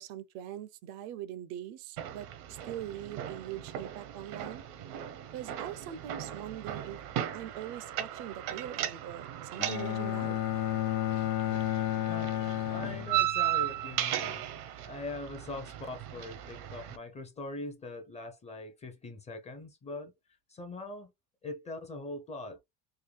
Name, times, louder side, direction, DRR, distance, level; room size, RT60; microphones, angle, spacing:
voice 1, 0.0-4.6 5.3-7.0 7.3-10.5, right 11 dB, 65° right, 0.6 m, -42 dB
sound 1, 2.0-17.0, right 12 dB, 85° right, 0.9 m, -37 dB
Bowed string instrument, 9.6-13.7, left 13 dB, 80° left, 0.8 m, -32 dB
voice 2, 12.0-14.5 14.8-20.1 20.5-21.1 21.4-22.6, left 2 dB, 15° left, 0.5 m, -42 dB
3.7 x 2.2 x 3.2 m
supercardioid pair, 140°, 44 cm